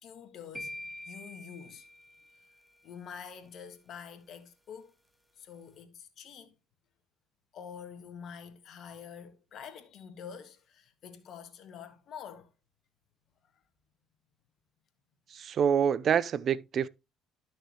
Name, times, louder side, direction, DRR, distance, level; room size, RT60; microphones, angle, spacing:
voice 1, 0.0-1.9 2.8-4.9 5.4-6.5 7.5-12.5, left 7 dB, 60° left, 1.8 m, -47 dB
sound 1, 0.5-2.7, left 1 dB, ahead, 1.7 m, -45 dB
voice 2, 15.3-16.9, right 8 dB, 55° right, 0.5 m, -26 dB
11.5 x 6.3 x 3.0 m
supercardioid pair, 65°, 0 cm